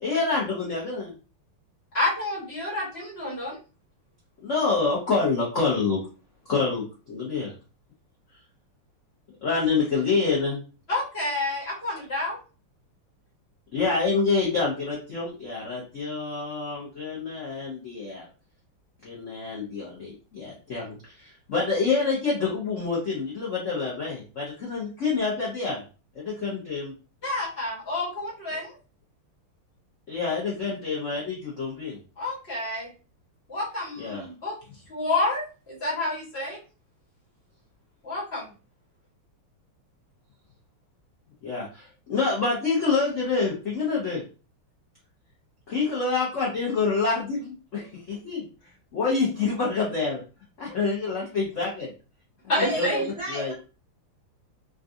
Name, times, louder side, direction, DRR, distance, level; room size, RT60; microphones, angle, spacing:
voice 1, 0.0-1.1 4.4-6.1 6.5-7.5 9.4-10.6 13.7-18.2 19.0-25.8 26.1-26.9 30.1-32.0 34.0-34.2 41.4-44.2 45.7-48.5 48.9-50.2 50.6-51.9 52.6-52.9 53.3-53.5, left 4 dB, 60° left, -5 dB, 0.8 m, -27 dB
voice 2, 1.9-3.6 10.9-12.4 27.2-28.8 32.2-32.9 33.5-34.6 34.9-36.6 38.0-38.5 52.5-53.0, left 2 dB, 35° left, -6 dB, 1.3 m, -29 dB
voice 3, 52.5-53.5, right 2 dB, 60° right, -5 dB, 0.7 m, -31 dB
3.8 x 2.4 x 2.6 m, 0.34 s
omnidirectional pair, 2.4 m